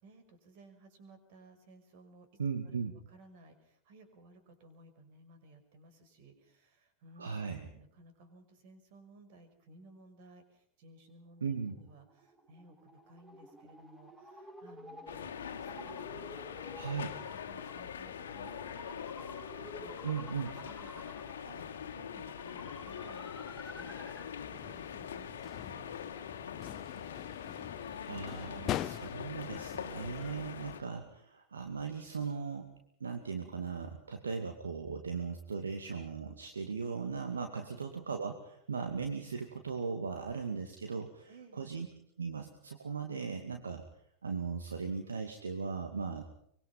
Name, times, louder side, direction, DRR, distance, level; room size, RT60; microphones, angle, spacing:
voice 1, 0.0-2.3 2.6-2.8 3.1-17.0 17.3-20.0 20.5-27.1 37.6-37.8 41.3-41.7, right 2 dB, 50° right, 8 dB, 5.6 m, -58 dB
voice 2, 2.4-2.9 7.2-7.7 11.4-11.8 16.7-17.2 20.0-20.5 28.0-32.7 33.0-41.9 42.2-43.8 44.2-46.2, right 5 dB, 70° right, 5 dB, 2.3 m, -38 dB
sound 1, 11.7-24.4, left 1 dB, 10° right, 6.0 m, -52 dB
sound 2, 15.1-30.8, left 8 dB, 65° left, 1.7 m, -43 dB
sound 3, 24.4-30.3, left 12 dB, 35° left, 0.9 m, -43 dB
24.5 x 23.0 x 5.7 m, 0.70 s
figure-of-eight pair, 90°, 0 cm